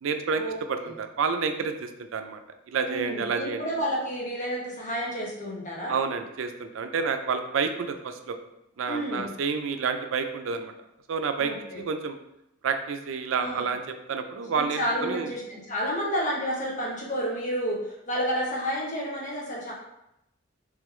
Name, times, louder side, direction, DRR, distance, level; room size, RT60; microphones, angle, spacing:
voice 1, 0.0-0.4 0.7-2.4 2.7-3.6 5.9-8.4 8.8-10.7 11.1-12.2 12.6-15.3, right 5 dB, 85° right, 7 dB, 0.4 m, -29 dB
voice 2, 2.9-6.0 8.9-9.3 11.4-11.8 13.3-13.7 14.5-17.8 18.1-19.7, equal, 40° left, -3 dB, 0.9 m, -30 dB
3.2 x 3.1 x 3.7 m, 0.85 s
head